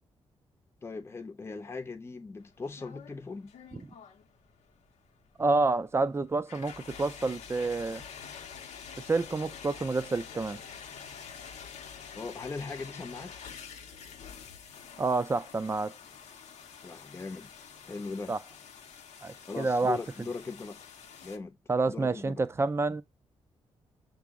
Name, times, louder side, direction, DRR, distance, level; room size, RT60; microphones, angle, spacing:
voice 1, 0.8-3.5 12.1-13.4 16.8-17.5 17.8-18.3 19.5-20.8 21.2-21.6 21.9-22.4, left 4 dB, 20° left, 0.6 m, -39 dB
sound 1, 2.4-21.4, left 7 dB, 80° left, 0.6 m, -48 dB
voice 2, 5.4-8.0 9.0-10.6 15.0-15.9 18.3-18.4 19.2-20.0 21.7-23.0, right 3 dB, 20° right, 0.4 m, -28 dB
5.9 x 2.0 x 3.5 m
cardioid pair, 85°, 11 cm